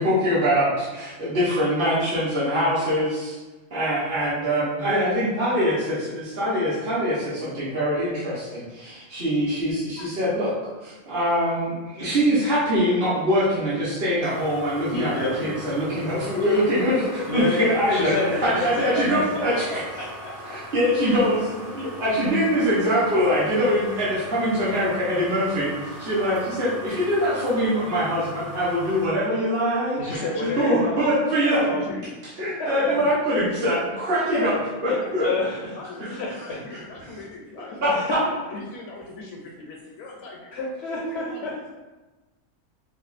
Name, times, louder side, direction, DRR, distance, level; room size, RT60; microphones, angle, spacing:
voice 1, 0.0-3.4 3.7-10.5 10.8-15.1 15.4-16.9 17.3-18.1 18.4-20.0 20.4-21.4 21.7-30.2 30.6-31.6 32.4-34.6 34.8-35.3 36.0-36.1 37.8-37.9, equal, 45° right, -11 dB, 1.0 m, -23 dB
sound 1, 14.2-29.1, equal, 15° right, 0.5 m, -40 dB
voice 2, 17.3-19.8 20.2-20.6 21.0-21.1 30.0-31.2 31.4-31.8 34.3-34.5 34.9-35.7 36.5-36.6 37.9-38.1 39.2-39.3 40.5-41.5, left 2 dB, 65° left, -4 dB, 0.7 m, -29 dB
voice 3, 18.2-18.5 19.3-19.6 21.2-21.5 26.1-26.3 30.0-30.9 31.5-32.1 32.7-33.1 34.5-35.1 35.8-40.7 41.0-41.7, left 3 dB, 80° left, -1 dB, 1.0 m, -37 dB
4.5 x 2.4 x 2.4 m, 1.2 s
omnidirectional pair, 1.4 m